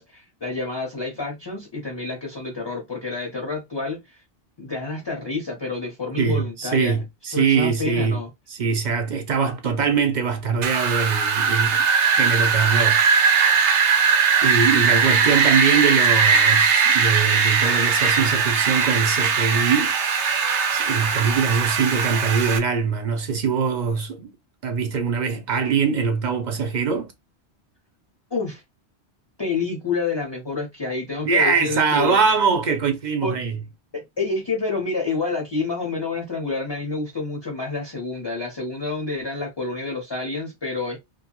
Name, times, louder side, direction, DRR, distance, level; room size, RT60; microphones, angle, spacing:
voice 1, 0.0-4.2 4.6-7.0 7.3-8.3 14.7-15.4 28.3-28.6 29.4-32.2 33.2-33.4 33.9-41.0, left 3 dB, 30° left, 0.6 m, -28 dB
voice 2, 6.2-8.2 8.5-11.8 12.1-13.0 14.4-19.9 20.7-24.3 24.6-27.1 31.2-33.5, right 6 dB, 55° right, 0.6 m, -22 dB
Wind, 10.6-22.6, right 6 dB, 90° right, 1.0 m, -19 dB
2.7 x 2.3 x 2.8 m
omnidirectional pair, 1.1 m